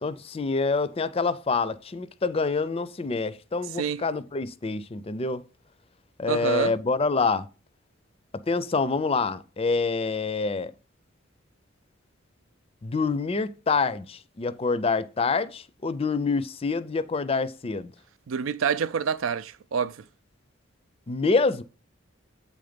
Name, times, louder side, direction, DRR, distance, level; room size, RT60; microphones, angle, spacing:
voice 1, 0.0-5.4 6.2-7.5 8.5-10.7 12.8-17.9 21.1-21.6, left 4 dB, 30° left, 0.5 m, -26 dB
voice 2, 6.3-6.7 18.3-20.0, right 6 dB, 80° right, 0.5 m, -27 dB
8.3 x 3.9 x 5.1 m
head